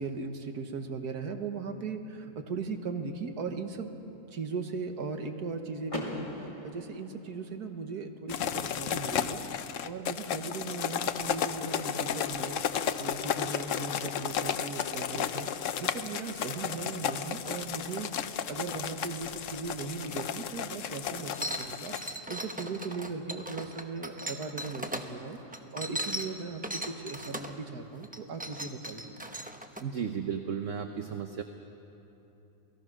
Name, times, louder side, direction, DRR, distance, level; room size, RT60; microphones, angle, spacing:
voice 1, 0.0-3.9 4.3-6.3 6.6-12.6 13.0-15.5 15.8-21.3 21.7-21.9 22.3-25.4 25.7-29.2, right 4 dB, 75° right, 6 dB, 1.9 m, -38 dB
Car / Door, 5.9-7.8, left 1 dB, 20° left, 2.4 m, -40 dB
sound 1, 8.3-22.1, left 8 dB, 60° left, 1.0 m, -33 dB
sound 2, 21.3-25.1 25.5-27.6 28.0-29.8, right 1 dB, 5° right, 0.8 m, -38 dB
voice 2, 29.8-31.4, right 7 dB, 55° right, 6 dB, 1.1 m, -34 dB
28.0 x 18.5 x 6.2 m, 3.0 s
omnidirectional pair, 1.7 m